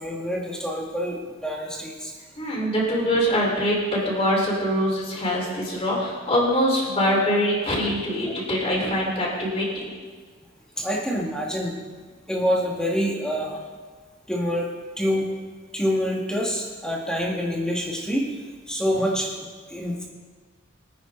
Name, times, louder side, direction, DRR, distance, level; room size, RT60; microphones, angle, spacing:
voice 1, 0.0-2.1 8.2-8.3 10.8-11.7 12.3-13.6 14.3-14.7 15.0-15.2 15.7-18.4 18.7-20.0, equal, 5° left, -2 dB, 2.2 m, -26 dB
voice 2, 2.4-9.9, equal, 30° left, -4 dB, 4.8 m, -23 dB
23.5 x 9.6 x 4.1 m, 1.5 s
head